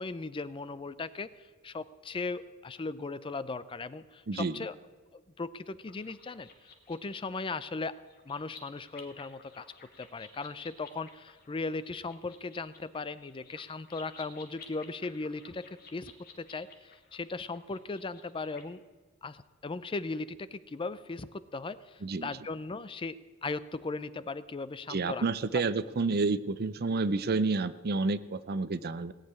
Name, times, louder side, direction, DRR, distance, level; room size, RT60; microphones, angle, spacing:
voice 1, 0.0-4.8 5.1-6.5 6.9-8.0 8.3-9.6 10.0-15.7 15.9-18.8 19.2-25.2, left 3 dB, 25° left, 15 dB, 0.4 m, -38 dB
voice 2, 4.3-4.6 22.0-22.3 24.9-29.1, right 3 dB, 50° right, 15 dB, 0.5 m, -29 dB
sound 1, 5.9-18.6, left 5 dB, 45° left, 1.8 m, -54 dB
18.0 x 6.6 x 9.6 m, 1.4 s
head